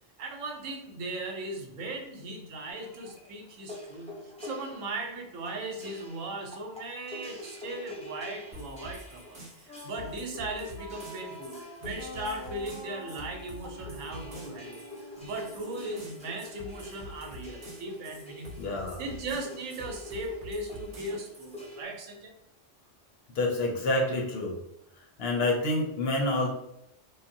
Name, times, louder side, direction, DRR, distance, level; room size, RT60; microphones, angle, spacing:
voice 1, 0.2-18.7 19.0-22.3, right 2 dB, 85° right, 2 dB, 1.0 m, -38 dB
sound 1, 2.7-21.8, left 1 dB, 5° left, 0.5 m, -46 dB
sound 2, 8.5-21.7, equal, 45° right, 0.8 m, -47 dB
Wind instrument woodwind instrument, 9.7-16.6, left 1 dB, 90° left, 1.0 m, -47 dB
voice 2, 18.6-19.0 23.3-24.6 25.2-26.5, left 2 dB, 60° left, 0 dB, 0.7 m, -28 dB
3.3 x 2.1 x 2.6 m, 0.82 s
omnidirectional pair, 1.3 m